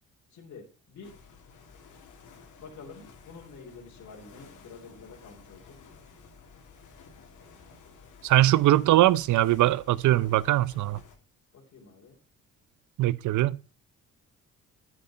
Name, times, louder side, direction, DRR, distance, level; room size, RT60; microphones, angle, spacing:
voice 1, 0.3-1.1 2.6-5.8 8.4-8.9 11.5-12.2, left 4 dB, 65° left, 3.7 m, -48 dB
sound 1, 1.0-11.1, left 5 dB, 85° left, 3.1 m, -53 dB
voice 2, 8.2-11.0 13.0-13.6, right 15 dB, 75° right, 0.7 m, -21 dB
11.0 x 8.5 x 5.0 m
cardioid pair, 90°, 30 cm